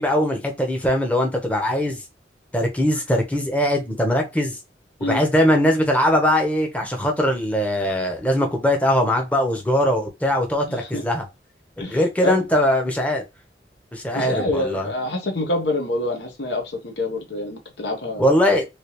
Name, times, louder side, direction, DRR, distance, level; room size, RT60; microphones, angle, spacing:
voice 1, 0.0-2.0 2.5-4.6 5.0-11.2 11.9-13.2 13.9-14.9 18.2-18.6, equal, 10° left, 0.7 m, -21 dB
voice 2, 10.7-11.0 11.8-12.4 14.1-18.3, left 1 dB, 80° left, 1.0 m, -26 dB
3.3 x 2.9 x 2.9 m
head